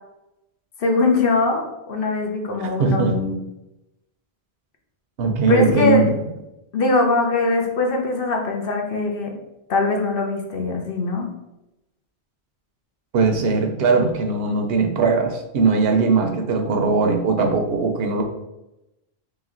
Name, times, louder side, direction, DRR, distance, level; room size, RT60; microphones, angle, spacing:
voice 1, 0.8-3.4 5.5-6.0 6.7-9.3 9.7-11.3, left 3 dB, 60° left, 2 dB, 0.9 m, -21 dB
voice 2, 2.6-3.1 5.2-6.1 13.1-18.2, right 4 dB, 70° right, 4 dB, 0.8 m, -20 dB
3.2 x 3.1 x 3.6 m, 0.92 s
omnidirectional pair, 1.1 m